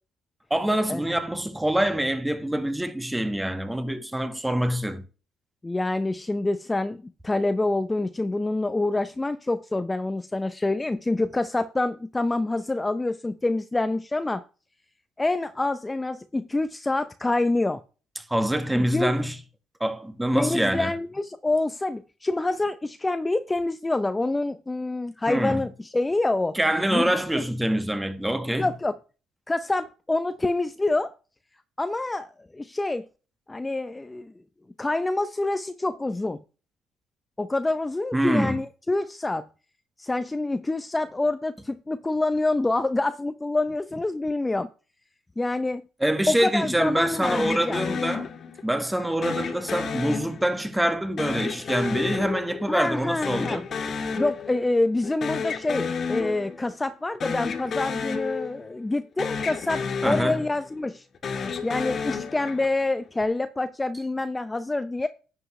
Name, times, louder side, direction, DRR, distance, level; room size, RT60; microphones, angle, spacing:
voice 1, 0.5-5.0 18.2-19.4 19.8-20.9 25.3-25.6 26.5-28.7 38.1-38.6 46.0-48.3 48.6-53.6 60.0-60.4, right 1 dB, 10° right, 1.5 m, -25 dB
voice 2, 5.6-14.4 15.2-17.8 18.7-19.1 20.3-26.6 26.9-27.4 28.6-28.9 29.5-31.1 31.8-32.3 32.5-33.1 33.5-34.3 34.8-36.4 37.4-39.5 40.0-44.7 45.4-45.8 46.3-47.8 52.7-53.6 54.1-61.0 61.6-65.1, left 2 dB, 15° left, 0.7 m, -26 dB
sound 1, 47.2-48.7 49.2-50.8 51.2-53.0 53.2-54.8 55.0-56.7 57.1-58.9 59.2-60.8 61.2-62.9, left 5 dB, 50° left, 1.6 m, -31 dB
11.0 x 7.8 x 3.2 m
supercardioid pair, 75°, 0 cm